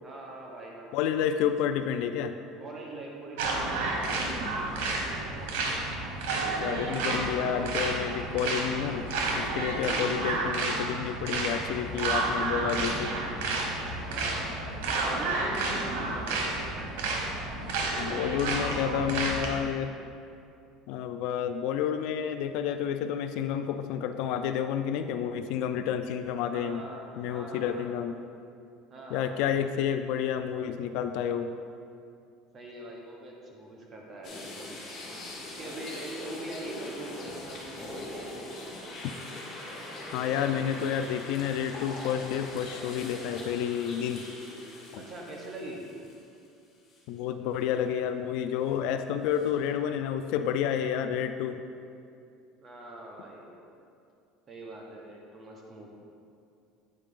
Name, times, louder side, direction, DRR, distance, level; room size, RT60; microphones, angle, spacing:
voice 1, 0.0-1.3 2.6-4.8 6.7-7.3 14.0-14.5 15.0-16.5 26.4-28.0 28.9-29.6 32.5-34.8 35.4-38.8 44.9-45.9 52.6-53.5 54.5-55.9, right 1 dB, 30° right, -1 dB, 1.0 m, -43 dB
voice 2, 0.9-2.4 6.6-9.1 9.3-13.1 18.0-19.9 20.9-26.8 27.2-28.2 29.1-31.5 40.1-44.2 44.9-45.0 47.1-51.6, left 9 dB, 70° left, 9 dB, 0.3 m, -30 dB
sound 1, 3.4-19.6, right 3 dB, 90° right, 1.1 m, -31 dB
sound 2, 34.2-46.5 46.9-47.0 49.3-49.5, left 1 dB, 40° left, 1.7 m, -42 dB
8.8 x 4.6 x 3.7 m, 2.5 s
cardioid pair, 140°, 0 cm